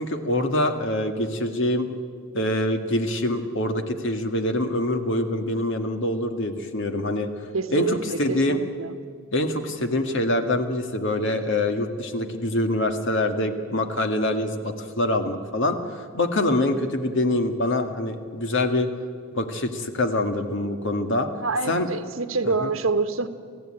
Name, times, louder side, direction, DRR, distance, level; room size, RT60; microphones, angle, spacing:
voice 1, 0.0-1.9 2.3-7.3 7.7-8.6 9.3-15.8 16.1-18.9 19.3-21.3 21.7-21.9 22.6-22.7, left 1 dB, 65° left, 6 dB, 1.9 m, -25 dB
voice 2, 7.5-8.9 21.4-23.3, right 3 dB, 75° right, 10 dB, 1.3 m, -27 dB
27.5 x 15.5 x 8.9 m, 2.2 s
head